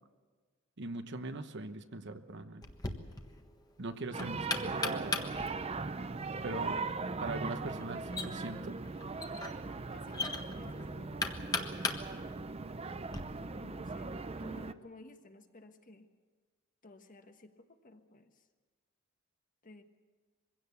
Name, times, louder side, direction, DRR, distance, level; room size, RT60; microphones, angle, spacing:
voice 1, 0.8-2.6 3.8-5.2 6.4-6.8 7.2-8.8, right 2 dB, 60° right, 9 dB, 1.1 m, -41 dB
Knock, 2.6-13.2, left 3 dB, 20° left, 1.3 m, -40 dB
sound 1, 4.1-14.7, right 3 dB, 30° right, 0.6 m, -39 dB
voice 2, 6.4-7.0 7.3-7.7 9.9-12.0 13.4-14.1 14.4-16.1 16.8-18.5 19.6-19.8, left 2 dB, 40° left, 7 dB, 1.4 m, -54 dB
23.0 x 16.5 x 8.3 m, 1.4 s
head